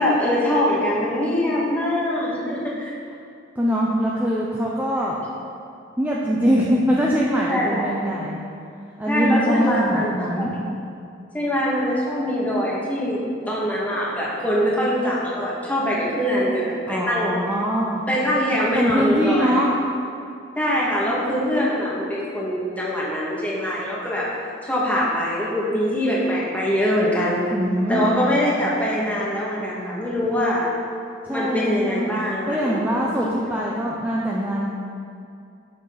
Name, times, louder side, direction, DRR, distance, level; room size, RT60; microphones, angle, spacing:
voice 1, 0.0-2.9 7.5-7.8 9.1-10.1 10.4-10.5 11.3-17.4 18.1-19.6 20.6-24.3 24.6-27.5 27.9-30.7 31.3-32.8 33.1-33.4, equal, 10° left, -6 dB, 2.0 m, -23 dB
voice 2, 3.6-5.2 6.0-8.4 9.0-10.6 16.9-18.0 18.7-19.7 27.5-28.4 30.2-30.3 31.2-32.2 32.5-34.7, equal, 10° right, -4 dB, 0.7 m, -23 dB
12.5 x 6.6 x 4.1 m, 2.5 s
head